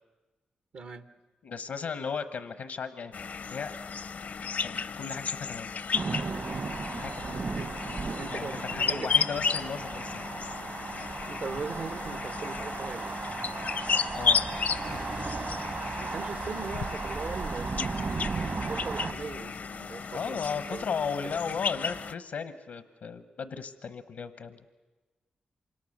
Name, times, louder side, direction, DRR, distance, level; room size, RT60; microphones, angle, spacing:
voice 1, 0.7-1.0 7.5-7.7 8.2-9.3 11.3-13.2 16.0-20.9 21.2-21.4, right 4 dB, 75° right, 9 dB, 1.2 m, -40 dB
voice 2, 1.4-3.1 3.4-3.8 4.6-6.6 6.9-7.5 8.3-10.4 14.1-15.4 20.1-24.6, left 6 dB, 80° left, 10 dB, 1.0 m, -36 dB
sound 1, 3.1-22.1, left 6 dB, 65° left, 0.7 m, -33 dB
sound 2, 5.9-19.1, right 4 dB, 60° right, 1.5 m, -36 dB
sound 3, 14.0-19.4, right 2 dB, 30° right, 0.7 m, -44 dB
27.0 x 25.5 x 6.6 m, 1.3 s
cardioid pair, 55°, 3 cm